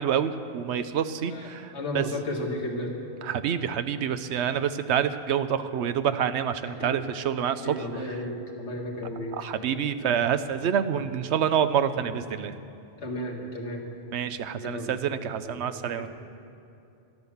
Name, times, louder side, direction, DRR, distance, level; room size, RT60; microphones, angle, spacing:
voice 1, 0.0-2.0 3.2-7.8 9.3-12.6 14.1-16.1, right 8 dB, 80° right, 11 dB, 0.9 m, -27 dB
voice 2, 1.7-3.0 6.8-7.0 7.6-9.3 13.0-13.8 14.6-14.9 15.4-15.6 16.0-16.1, left 1 dB, 80° left, 0 dB, 2.0 m, -33 dB
12.0 x 12.0 x 7.1 m, 2.6 s
omnidirectional pair, 1.1 m